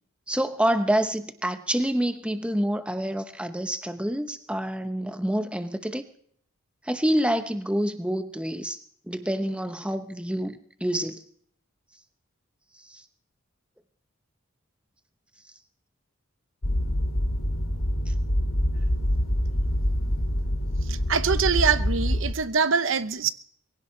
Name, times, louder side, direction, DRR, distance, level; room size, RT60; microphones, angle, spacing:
voice 1, 0.3-6.0 6.8-8.8 9.1-11.2 12.9-13.0 18.1-18.2, right 1 dB, 5° right, 0.9 m, -27 dB
sound 1, 16.6-22.3, equal, 80° left, 2.1 m, -25 dB
voice 2, 20.9-23.3, right 6 dB, 65° right, 0.8 m, -24 dB
23.0 x 16.5 x 3.2 m
head